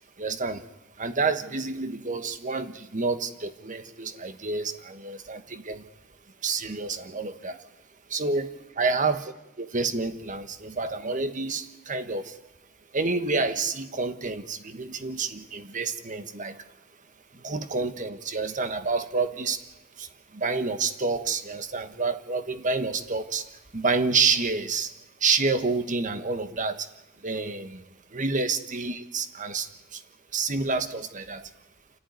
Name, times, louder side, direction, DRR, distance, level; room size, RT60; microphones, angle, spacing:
voice 1, 0.2-0.6 1.0-5.8 6.4-7.6 8.1-8.5 8.8-12.3 12.9-16.5 17.4-19.6 20.0-20.1 20.3-23.4 23.7-24.9 25.2-26.8 27.2-27.8 28.1-29.7 29.9-30.0 30.3-31.4, right 4 dB, 35° right, 10 dB, 1.4 m, -28 dB
29.5 x 11.0 x 9.5 m, 0.96 s
head